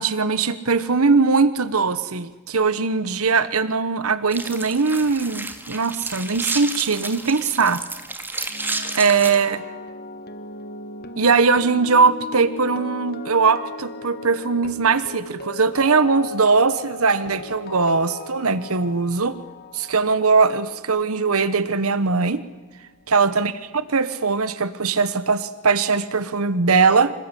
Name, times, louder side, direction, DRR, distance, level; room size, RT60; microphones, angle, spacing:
voice 1, 0.0-7.8 9.0-9.6 11.2-19.4 19.7-22.4 23.1-23.5 23.9-27.1, right 4 dB, 80° right, 14 dB, 1.1 m, -20 dB
sound 1, 4.3-9.4, right 3 dB, 10° right, 2.1 m, -31 dB
sound 2, 8.5-22.6 22.8-23.1, left 2 dB, 45° left, 1.9 m, -38 dB
26.5 x 21.0 x 10.0 m, 1.2 s
head